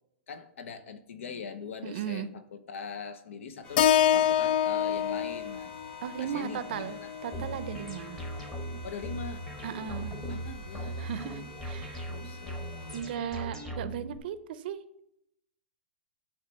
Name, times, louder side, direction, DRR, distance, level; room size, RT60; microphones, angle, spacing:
voice 1, 0.3-5.7 6.2-7.1 8.8-11.2 12.1-13.2, left 6 dB, 80° left, 11 dB, 0.9 m, -42 dB
voice 2, 1.8-2.3 6.0-8.2 9.6-10.1 11.0-12.1 12.9-14.8, right 9 dB, 50° right, 13 dB, 0.6 m, -36 dB
sound 1, 3.6-13.0, left 3 dB, 25° left, 2.0 m, -49 dB
Keyboard (musical), 3.8-8.0, left 10 dB, 45° left, 0.4 m, -27 dB
sound 2, 7.3-14.2, right 1 dB, 5° left, 0.9 m, -39 dB
9.6 x 3.2 x 6.3 m, 0.78 s
hypercardioid pair, 165°, 7 cm